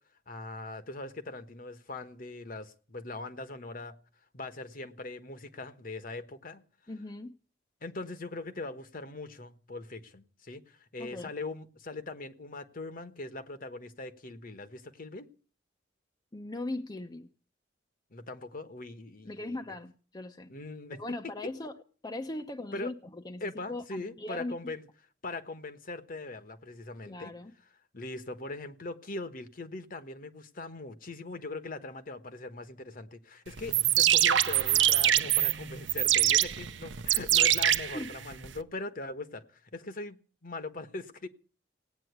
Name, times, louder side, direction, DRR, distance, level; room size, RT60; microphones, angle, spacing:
voice 1, 0.3-4.0 4.3-6.6 7.8-15.3 18.1-19.6 20.5-21.0 22.7-22.9 23.4-24.8 25.2-27.3 27.9-41.3, left 2 dB, 50° left, 1.3 m, -41 dB
voice 2, 6.9-7.3 11.0-11.3 16.3-17.3 19.2-20.5 20.9-21.7 22.0-24.7 27.0-27.5 37.9-38.2, left 2 dB, 25° left, 0.8 m, -39 dB
sound 1, 33.6-38.6, right 12 dB, 75° right, 0.7 m, -25 dB
17.5 x 9.1 x 8.1 m
head